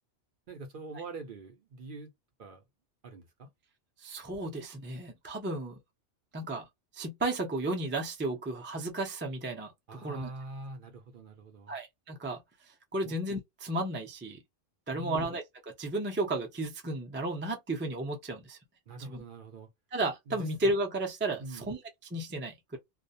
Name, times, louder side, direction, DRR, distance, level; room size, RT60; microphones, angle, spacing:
voice 1, 0.5-2.1 2.4-2.6 3.0-3.5 9.9-11.7 13.0-13.2 14.9-15.3 18.9-19.7 20.3-20.5 21.4-21.7, right 2 dB, 55° right, 0.7 m, -44 dB
voice 2, 4.0-5.7 6.3-6.7 6.9-9.7 10.0-10.3 11.7-12.4 12.9-14.4 14.9-18.6 19.0-19.2 19.9-21.8 22.1-22.8, right 2 dB, 15° right, 0.4 m, -33 dB
2.3 x 2.0 x 2.5 m
omnidirectional pair, 1.2 m